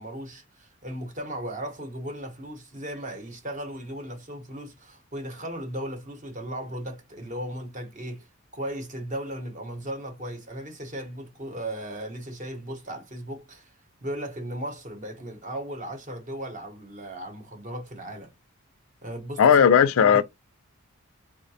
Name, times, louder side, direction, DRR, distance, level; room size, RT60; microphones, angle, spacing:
voice 1, 0.0-8.3 8.5-13.7 14.0-18.3 19.0-19.7 20.0-20.2, right 1 dB, 35° right, 0.8 m, -36 dB
voice 2, 19.4-20.2, left 7 dB, 65° left, 0.4 m, -16 dB
4.6 x 2.1 x 2.6 m
head